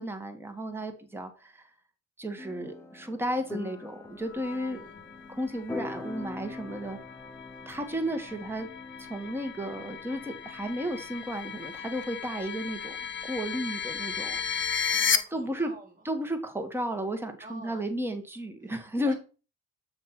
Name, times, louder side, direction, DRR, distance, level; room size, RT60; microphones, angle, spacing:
voice 1, 0.0-1.6 2.2-4.8 5.3-7.0 7.7-8.7 9.0-13.0 13.2-14.4 15.3-15.7 16.0-19.1, equal, 10° right, 6 dB, 1.3 m, -33 dB
sound 1, 2.4-12.0, left 2 dB, 10° left, 0.8 m, -44 dB
sound 2, 4.2-15.2, left 7 dB, 40° left, 0.8 m, -35 dB
voice 2, 4.4-4.9 14.8-15.9 17.4-17.8 19.0-19.1, right 1 dB, 30° right, -1 dB, 1.5 m, -48 dB
7.6 x 3.3 x 5.8 m, 0.34 s
cardioid pair, 90°, 30 cm